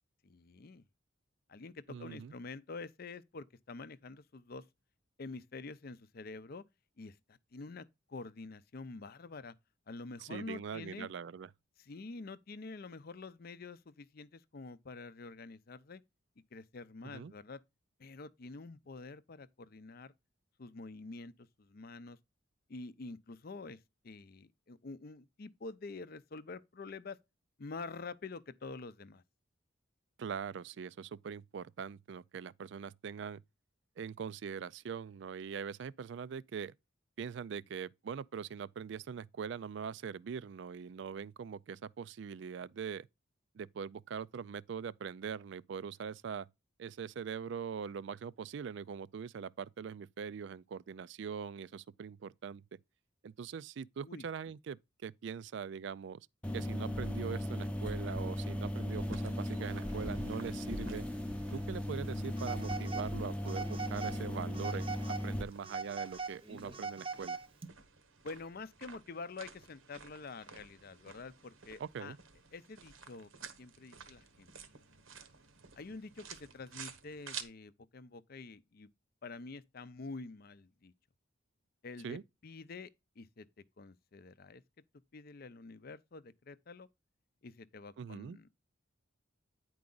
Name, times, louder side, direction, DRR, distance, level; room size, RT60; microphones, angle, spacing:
voice 1, 0.2-0.8 1.5-4.6 5.2-6.6 7.0-9.6 9.9-11.1 11.8-16.0 16.5-17.6 18.0-20.1 20.6-22.2 22.7-27.2 27.6-29.2 54.0-54.2 68.2-72.2 72.5-73.3 73.6-74.6 75.7-78.9 79.2-80.9 81.8-82.9 83.2-83.5 83.8-84.6 85.1-86.9 87.4-88.5, left 3 dB, 50° left, 0.5 m, -47 dB
voice 2, 1.9-2.3 10.2-11.5 17.0-17.3 30.2-33.4 34.0-36.7 37.2-43.1 43.5-46.5 46.8-52.6 53.2-56.3 56.5-61.0 61.5-67.4 71.8-72.2 82.0-82.2 88.0-88.4, right 6 dB, 60° right, 0.3 m, -42 dB
sound 1, 56.4-65.4, left 1 dB, 5° left, 0.6 m, -37 dB
sound 2, 58.9-77.4, right 7 dB, 85° right, 1.2 m, -54 dB
Telephone, 62.4-63.1 63.5-64.2 64.5-65.3 65.6-67.7, right 4 dB, 25° right, 0.8 m, -41 dB
9.5 x 4.7 x 3.8 m
head